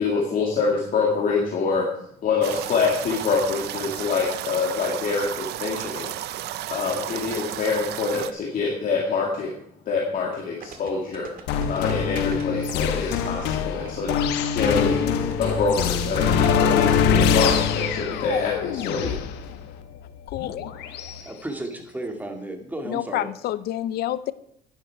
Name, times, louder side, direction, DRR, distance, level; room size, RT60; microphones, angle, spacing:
voice 1, 0.0-1.9 2.2-6.1 6.7-9.5 9.9-11.3 11.7-14.1 14.5-19.1, left 4 dB, 55° left, -2 dB, 2.3 m, -25 dB
sound 1, 2.4-8.3, right 13 dB, 75° right, 0.7 m, -33 dB
sound 2, 10.6-15.7 15.9-16.0, right 6 dB, 60° right, 1.9 m, -41 dB
sound 3, 11.5-21.2, left 7 dB, 85° left, 1.1 m, -23 dB
voice 2, 20.3-20.7 22.8-24.3, left 13 dB, 70° left, 16 dB, 0.6 m, -28 dB
voice 3, 20.9-23.3, right 1 dB, 10° right, 4 dB, 2.2 m, -34 dB
11.0 x 10.5 x 4.7 m, 0.72 s
cardioid pair, 110°, 17 cm